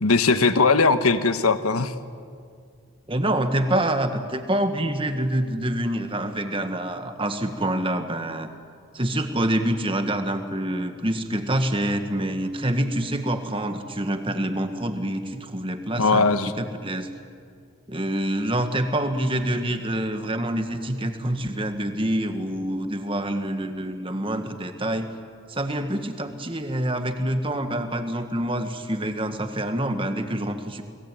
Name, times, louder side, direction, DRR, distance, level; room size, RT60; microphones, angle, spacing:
voice 1, 0.0-1.9 16.0-16.5, left 4 dB, 85° left, 10 dB, 1.4 m, -19 dB
voice 2, 3.1-8.5 8.9-17.1 17.9-25.1 25.5-30.8, right 1 dB, 25° right, 7 dB, 1.7 m, -26 dB
30.0 x 21.0 x 9.3 m, 2.2 s
head